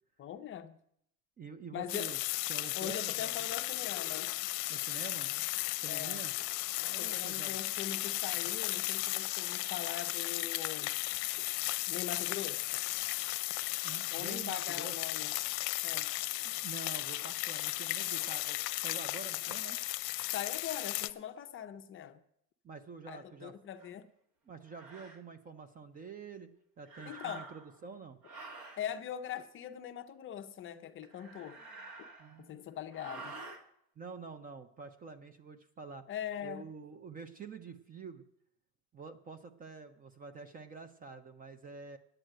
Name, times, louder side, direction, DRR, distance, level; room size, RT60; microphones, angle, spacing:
voice 1, 0.2-0.8 1.7-2.1 2.7-4.3 5.9-6.2 7.0-10.9 11.4-11.5 11.9-12.8 14.1-15.3 15.8-16.1 20.3-22.2 23.1-24.1 27.0-27.4 28.8-31.6 32.4-33.3 36.1-36.7, left 10 dB, 30° left, 0.5 m, -42 dB
voice 2, 1.4-2.2 2.5-3.3 4.7-5.5 5.8-6.3 6.9-7.7 13.8-15.0 16.6-19.8 22.6-23.5 24.5-26.5 26.8-28.2 32.2-32.7 34.0-36.0 36.4-38.2 38.9-42.0, right 5 dB, 20° right, 0.5 m, -47 dB
sound 1, 1.9-21.1, left 21 dB, 75° left, 0.6 m, -35 dB
sound 2, 23.8-23.9 24.7-25.2 26.8-27.8 28.2-28.9 31.0-32.5 32.9-33.6, right 3 dB, 45° right, 1.6 m, -48 dB
9.2 x 9.0 x 7.5 m
cardioid pair, 160°, 40 cm